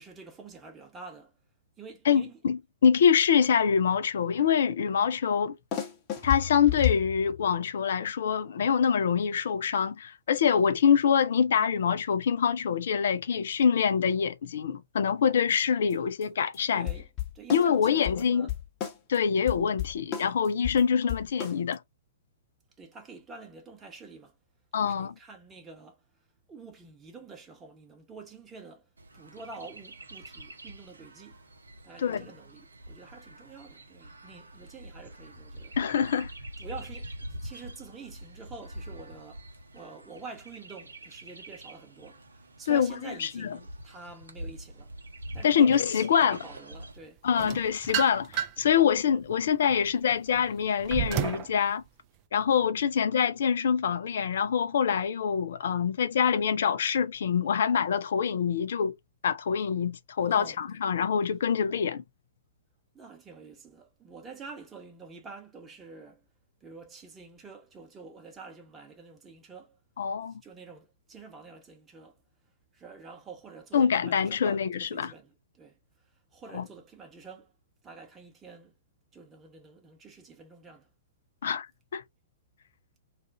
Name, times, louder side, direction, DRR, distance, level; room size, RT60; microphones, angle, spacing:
voice 1, 0.0-1.3 1.8-2.4 16.7-17.1 17.3-18.5 19.2-19.5 22.8-24.4 24.8-26.0 26.5-31.4 31.8-35.8 36.6-39.4 39.7-44.9 45.3-47.2 60.3-60.6 62.9-66.2 66.6-69.8 70.4-72.1 72.7-75.8 76.3-77.5 77.8-78.8 79.1-80.9, right 4 dB, 15° right, 1.0 m, -47 dB
voice 2, 2.1-5.6 6.2-16.9 17.5-18.5 19.1-21.8 24.7-25.1 32.0-32.2 35.8-36.3 42.7-43.5 45.4-46.4 47.2-51.8 52.3-58.9 59.2-62.0 70.0-70.4 73.7-75.1 76.5-76.6 81.4-81.7 81.9-82.0, left 7 dB, 60° left, 0.5 m, -25 dB
sound 1, 5.7-7.6 15.6-15.7 15.9-16.0 16.2-16.3 16.5-16.6 16.9-19.2 19.5-21.7, left 12 dB, 30° left, 1.0 m, -32 dB
Chirp tweet, 29.0-47.0, right 1 dB, 75° right, 0.7 m, -45 dB
sound 2, 47.4-48.7 49.3-51.5, right 10 dB, 35° right, 0.5 m, -32 dB
2.5 x 2.4 x 3.6 m
figure-of-eight pair, 115°, 0 cm